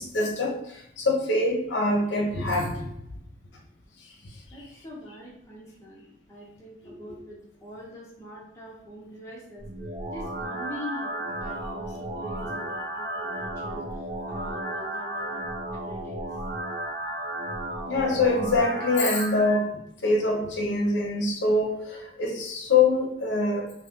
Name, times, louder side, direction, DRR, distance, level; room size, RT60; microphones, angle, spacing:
voice 1, 0.0-2.9 6.8-6.9 17.9-23.7, left 3 dB, 65° left, 1 dB, 0.7 m, -24 dB
voice 2, 4.5-9.7 10.1-15.4 15.7-16.4, equal, 15° left, -5 dB, 0.9 m, -43 dB
sound 1, 9.6-19.6, right 1 dB, 50° right, 0.6 m, -34 dB
2.5 x 2.5 x 3.6 m, 0.81 s
head